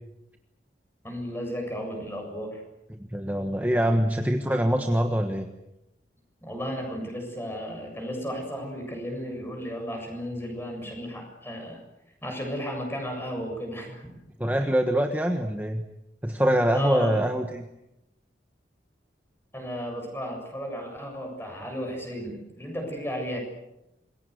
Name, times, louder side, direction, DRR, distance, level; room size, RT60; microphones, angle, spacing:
voice 1, 1.0-2.6 6.4-11.8 12.2-14.2 14.6-14.7 16.7-17.2 19.5-23.4, equal, 15° left, 3 dB, 7.2 m, -34 dB
voice 2, 3.1-5.5 14.4-15.8 16.2-17.6, equal, 10° right, 5 dB, 1.3 m, -24 dB
27.0 x 22.0 x 8.1 m, 0.89 s
head